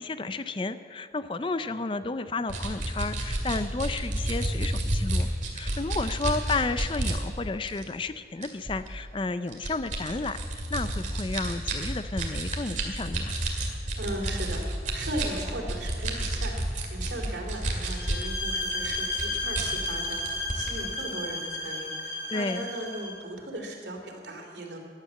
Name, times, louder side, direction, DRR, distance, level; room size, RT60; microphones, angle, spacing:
voice 1, 0.0-5.3 5.5-10.4 10.7-13.4 22.3-22.7, left 3 dB, 30° left, 12 dB, 0.4 m, -32 dB
sound 1, 2.5-7.2 7.7-7.8 8.4-8.9 9.5-18.3 18.6-20.7, right 1 dB, 45° right, 2.1 m, -30 dB
voice 2, 14.0-24.8, right 1 dB, 85° right, 2 dB, 2.9 m, -37 dB
sound 2, 17.9-23.2, left 2 dB, 55° left, 2.9 m, -33 dB
15.0 x 10.5 x 7.5 m, 2.3 s
head